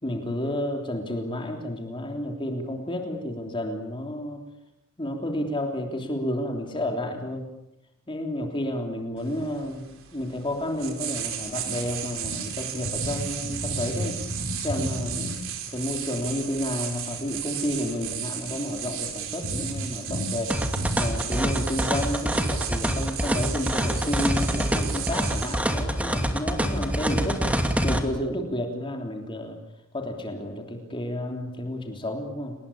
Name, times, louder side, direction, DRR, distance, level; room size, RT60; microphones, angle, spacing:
voice 1, 0.0-4.4 5.0-7.5 8.1-9.8 10.1-14.2 14.6-15.3 15.7-20.7 21.0-29.6 29.9-32.5, left 1 dB, 25° left, 3 dB, 3.3 m, -31 dB
sound 1, 9.2-27.6, right 5 dB, 65° right, 4.6 m, -34 dB
sound 2, 20.5-28.0, equal, 5° right, 2.6 m, -26 dB
29.5 x 20.0 x 8.6 m, 0.88 s
head